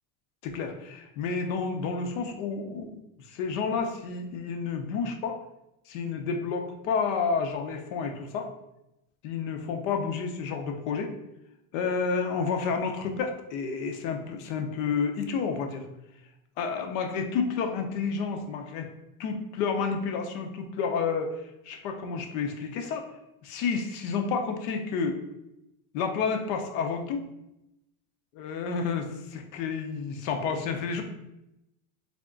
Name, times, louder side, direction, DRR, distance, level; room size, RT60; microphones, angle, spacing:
voice 1, 0.4-3.0 3.3-5.4 5.9-8.5 9.2-11.1 11.7-15.8 16.6-18.9 19.2-23.1 23.4-25.2 25.9-27.3 28.3-31.0, left 5 dB, 65° left, 5 dB, 0.8 m, -30 dB
3.6 x 3.4 x 3.8 m, 0.88 s
cardioid pair, 175°, 43 cm